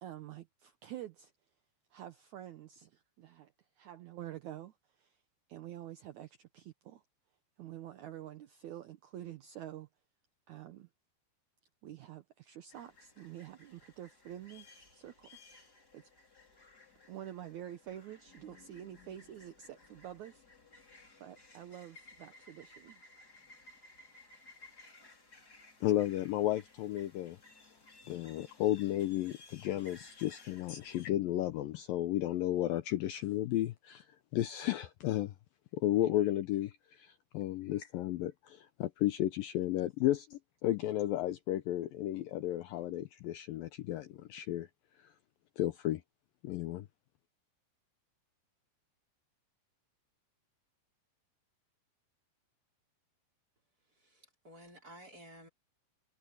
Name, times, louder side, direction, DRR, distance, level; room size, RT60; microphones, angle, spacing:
voice 1, 0.0-1.3 1.9-5.2 5.5-7.0 7.6-9.9 10.5-10.9 11.8-15.3 15.6-15.7 15.9-16.1 17.1-20.4 21.2-23.0 25.0-25.1, right 12 dB, 80° right, 1.7 m, -48 dB
sound 1, 12.7-31.1, left 3 dB, 20° left, 5.5 m, -59 dB
voice 2, 25.8-27.4 28.1-34.1 34.3-35.3 35.7-44.7 45.6-46.0 46.4-46.9, left 13 dB, 75° left, 2.2 m, -33 dB
voice 3, 53.9-55.5, equal, 20° right, 5.5 m, -54 dB
omnidirectional pair, 4.7 m